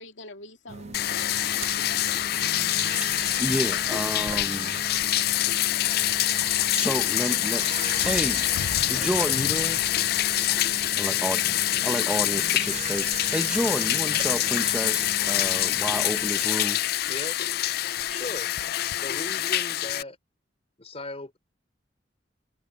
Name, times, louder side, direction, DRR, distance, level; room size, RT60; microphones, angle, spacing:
voice 1, 0.0-2.8, left 2 dB, 85° left, 2.3 m, -46 dB
sound 1, 0.7-16.3, right 5 dB, 35° right, 0.3 m, -39 dB
Bathtub (filling or washing), 0.9-20.0, left 14 dB, 55° left, 0.4 m, -25 dB
voice 2, 3.0-4.8 6.5-7.7 8.0-8.4 8.9-9.9 11.0-11.5 11.8-16.9, right 1 dB, 5° right, 0.8 m, -31 dB
sound 2, 4.5-4.8 5.4-12.8, right 9 dB, 85° right, 5.1 m, -57 dB
voice 3, 17.1-17.4 18.1-18.5 19.0-20.2 20.8-21.4, left 2 dB, 35° left, 3.7 m, -37 dB
head